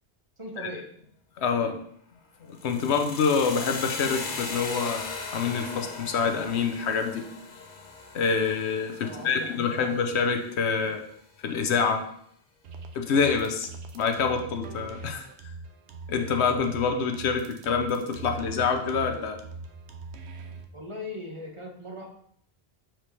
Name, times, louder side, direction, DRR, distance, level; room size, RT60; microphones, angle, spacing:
voice 1, 0.4-0.8 1.6-1.7 9.0-9.5 9.8-9.9 20.7-22.1, left 1 dB, 30° right, -1 dB, 1.2 m, -39 dB
voice 2, 1.4-1.7 2.4-5.1 5.3-7.3 8.1-11.0 11.4-12.0 12.9-13.7 13.9-15.3 16.1-19.4, left 5 dB, 80° left, 6 dB, 1.0 m, -26 dB
sound 1, 2.5-10.6, left 4 dB, 50° left, 0.9 m, -38 dB
sound 2, 12.6-20.7, right 3 dB, 80° right, 1.0 m, -41 dB
7.5 x 4.4 x 3.2 m, 0.67 s
omnidirectional pair, 1.1 m